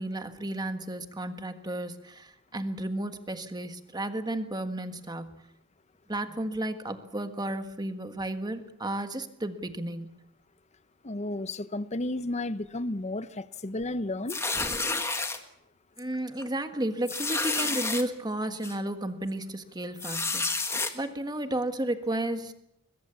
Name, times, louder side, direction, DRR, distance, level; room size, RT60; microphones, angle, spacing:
voice 1, 0.0-5.5 6.1-10.2 16.0-20.6 20.9-22.5, right 1 dB, 20° right, 1.6 m, -33 dB
voice 2, 11.0-14.4, left 2 dB, 30° left, 0.8 m, -32 dB
sound 1, 14.3-15.4 16.0-16.1 16.4-16.5 17.1-18.0 18.6-18.7 20.0-20.9, left 3 dB, 10° left, 1.7 m, -30 dB
22.0 x 21.5 x 7.2 m
head